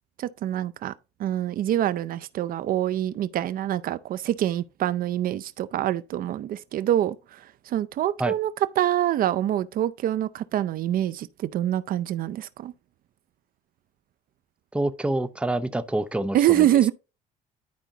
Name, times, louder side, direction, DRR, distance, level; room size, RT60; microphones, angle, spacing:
voice 1, 0.2-0.9 1.2-8.5 8.8-12.7 16.3-16.9, right 12 dB, 60° right, 0.5 m, -25 dB
voice 2, 14.7-16.7, right 1 dB, 5° right, 0.6 m, -27 dB
11.5 x 5.0 x 2.7 m
cardioid pair, 110°, 17 cm